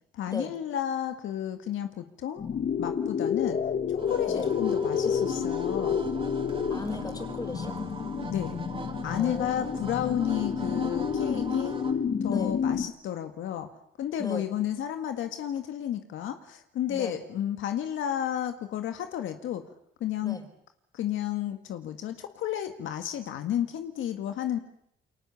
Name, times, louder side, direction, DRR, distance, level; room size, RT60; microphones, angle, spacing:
voice 1, 0.1-3.6 3.9-6.0 8.3-8.6 9.0-11.7 12.2-13.7 14.0-19.6 20.0-20.4 20.9-24.6, left 10 dB, 80° left, 7 dB, 1.9 m, -32 dB
sound 1, 2.4-12.9, left 7 dB, 50° left, 1.8 m, -29 dB
sound 2, 4.0-11.9, right 3 dB, 25° right, 4.3 m, -41 dB
voice 2, 6.7-7.8 9.2-9.7 12.2-12.5 14.2-14.4 16.9-17.2 20.2-20.4, left 2 dB, 20° left, 6 dB, 5.0 m, -37 dB
29.0 x 23.5 x 7.1 m, 0.75 s
cardioid pair, 90°, 20 cm